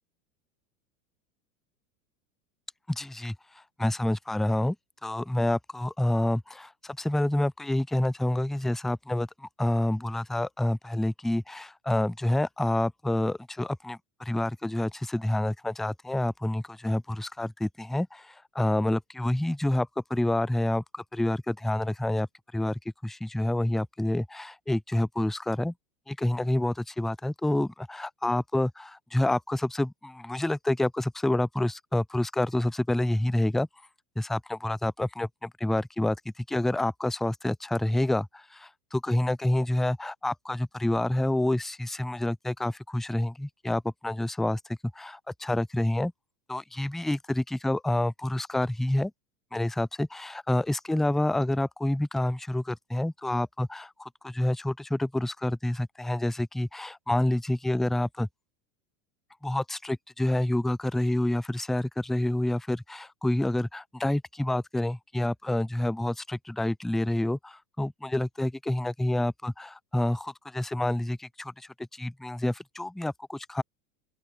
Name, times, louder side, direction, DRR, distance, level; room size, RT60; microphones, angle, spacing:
voice 1, 2.9-4.8 5.0-22.3 22.5-25.7 26.1-33.7 34.2-44.6 44.9-46.1 46.5-49.1 49.5-58.3 59.4-73.6, left 1 dB, ahead, 0.4 m, -28 dB
open air
supercardioid pair, 135°, 40 cm